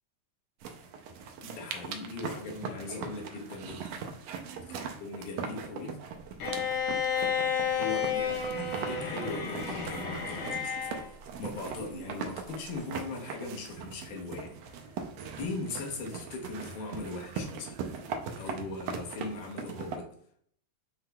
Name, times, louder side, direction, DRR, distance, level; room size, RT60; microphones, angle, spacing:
sound 1, 0.6-20.0, right 6 dB, 85° right, 1.5 m, -40 dB
voice 1, 1.4-3.8 4.2-4.3 4.7-6.0 7.7-10.8 11.1-14.9 15.4-17.8 18.4-20.1, left 3 dB, 80° left, 1 dB, 2.4 m, -39 dB
Bowed string instrument, 6.4-11.1, left 6 dB, 60° left, 1.5 m, -31 dB
7.2 x 2.9 x 2.2 m, 0.63 s
omnidirectional pair, 3.5 m